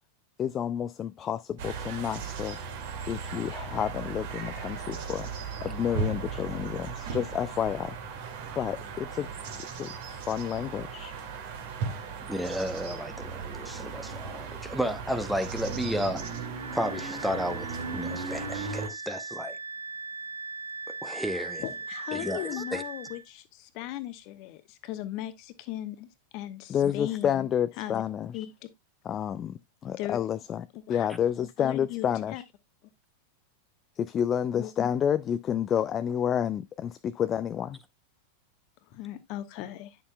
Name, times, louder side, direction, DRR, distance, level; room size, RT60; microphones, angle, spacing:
voice 1, 0.4-2.6 3.1-5.3 5.6-8.0 8.6-9.3 9.8-11.1 26.7-28.5 29.1-32.4 34.0-37.8, left 9 dB, 25° left, 0.4 m, -30 dB
sound 1, 1.6-18.9, right 5 dB, 50° right, 2.0 m, -37 dB
voice 2, 12.3-16.2 16.7-19.6 21.0-21.6 22.1-22.8, equal, ahead, 0.8 m, -33 dB
Wind instrument woodwind instrument, 16.2-23.2, right 4 dB, 70° right, 0.5 m, -39 dB
voice 3, 21.6-27.5 27.8-28.0 28.3-28.7 30.0-30.2 30.7-31.1 31.6-32.4 34.6-34.7 38.9-40.0, left 14 dB, 45° left, 1.1 m, -38 dB
10.0 x 7.0 x 2.2 m
figure-of-eight pair, 90°, 0 cm